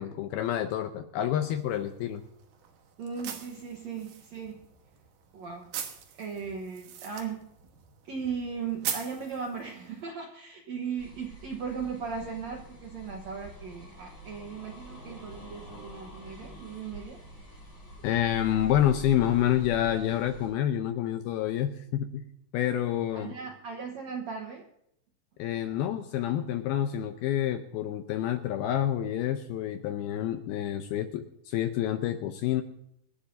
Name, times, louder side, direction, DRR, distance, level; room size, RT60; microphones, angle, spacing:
voice 1, 0.0-2.2 18.0-22.3 22.5-23.3 25.4-32.6, left 11 dB, 80° left, 7 dB, 2.3 m, -28 dB
sound 1, 1.4-10.0, right 8 dB, 65° right, 2.3 m, -42 dB
voice 2, 3.0-4.7 5.3-5.7 6.2-7.4 8.1-17.2 23.1-24.6, right 6 dB, 90° right, 1 dB, 1.5 m, -37 dB
sound 2, 11.0-20.5, right 1 dB, 25° left, 7.1 m, -46 dB
25.5 x 11.5 x 2.7 m, 0.76 s
omnidirectional pair, 5.0 m